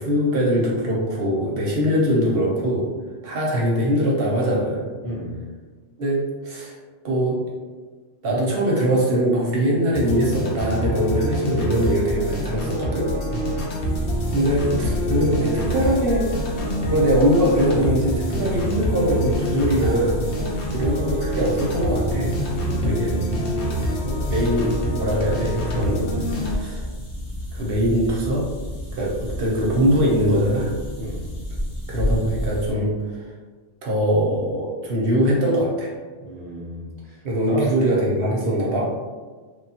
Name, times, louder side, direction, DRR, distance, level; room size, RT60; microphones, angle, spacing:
voice 1, 0.0-2.9 3.2-4.9 6.0-6.7 7.0-7.4 8.2-13.1 14.3-16.3 16.9-22.3 22.8-23.1 23.6-23.8 24.0-26.8 27.5-28.5 28.9-30.7 31.9-33.2 33.8-35.9 37.2-38.9, equal, 60° right, -3 dB, 0.7 m, -22 dB
voice 2, 5.0-5.4 13.3-13.6 20.4-20.6 22.6-23.2 31.0-31.3 36.2-37.2 37.5-37.7, right 2 dB, 20° left, -7 dB, 0.3 m, -33 dB
sound 1, 9.9-26.5, equal, 70° left, 0.9 m, -26 dB
sound 2, 13.8-32.7, left 1 dB, 45° left, 0.8 m, -32 dB
3.1 x 2.2 x 2.8 m, 1.4 s
omnidirectional pair, 1.3 m